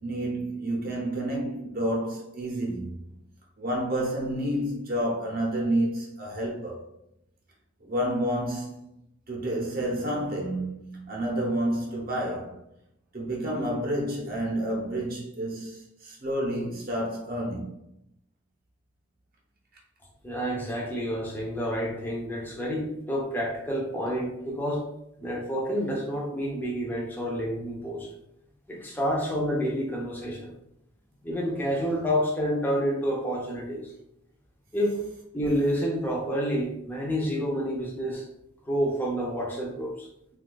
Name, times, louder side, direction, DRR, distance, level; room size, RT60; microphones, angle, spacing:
voice 1, 0.0-2.9 3.6-6.8 7.8-8.9 9.3-12.5 13.1-17.7, right 1 dB, 40° right, 0.7 m, -29 dB
voice 2, 20.2-24.8 25.2-28.1 28.7-30.5 31.2-33.9 34.7-35.0 35.3-38.2 38.7-40.1, equal, 10° left, 0.5 m, -29 dB
2.7 x 2.3 x 3.8 m
head